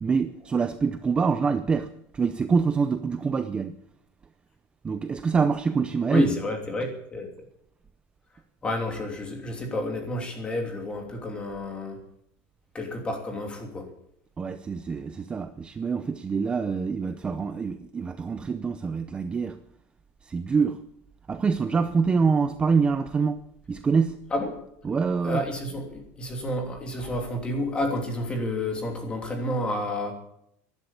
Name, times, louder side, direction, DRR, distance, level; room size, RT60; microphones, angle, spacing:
voice 1, 0.0-3.8 4.8-6.4 14.4-19.6 20.2-20.8 21.3-23.4 23.7-24.2 24.8-25.4, right 5 dB, 15° right, 0.6 m, -25 dB
voice 2, 6.1-7.3 8.6-12.0 12.7-13.9 24.3-24.5 25.2-30.1, left 1 dB, 15° left, 3.0 m, -30 dB
13.5 x 11.5 x 8.5 m
cardioid pair, 165°, 6 cm